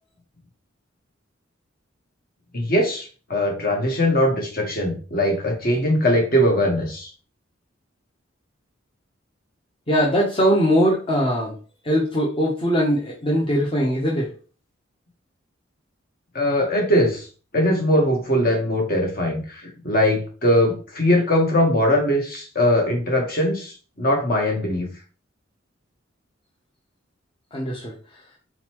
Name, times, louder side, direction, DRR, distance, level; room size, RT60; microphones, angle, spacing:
voice 1, 2.5-7.1 16.3-17.3 17.5-24.9, left 1 dB, 50° left, 1 dB, 1.4 m, -21 dB
voice 2, 9.9-11.6 11.8-14.3 27.5-28.2, equal, 25° left, -3 dB, 0.8 m, -21 dB
4.3 x 3.9 x 3.0 m, 0.38 s
head